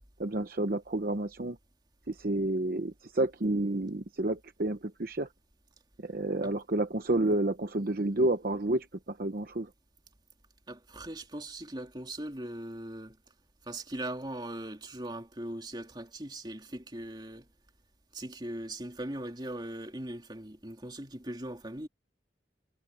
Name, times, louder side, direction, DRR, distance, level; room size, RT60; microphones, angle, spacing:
voice 1, 0.2-1.6 2.1-5.3 6.0-9.7, right 2 dB, 55° right, 0.9 m, -30 dB
voice 2, 10.7-13.2 13.6-17.5 18.1-21.9, right 1 dB, 25° right, 3.0 m, -40 dB
head